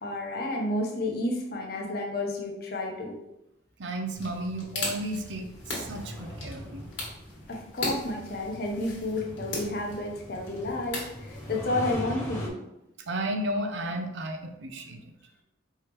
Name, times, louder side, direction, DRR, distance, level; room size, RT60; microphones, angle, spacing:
voice 1, 0.0-3.2 7.5-12.5, left 1 dB, 55° left, 0 dB, 0.8 m, -31 dB
voice 2, 3.8-6.9 13.1-15.1, right 1 dB, 70° right, 4 dB, 0.6 m, -33 dB
sound 1, 4.2-11.9, left 2 dB, 90° left, 1.5 m, -39 dB
sound 2, 4.8-12.5, equal, 15° left, 0.7 m, -41 dB
4.7 x 3.4 x 3.0 m, 0.88 s
head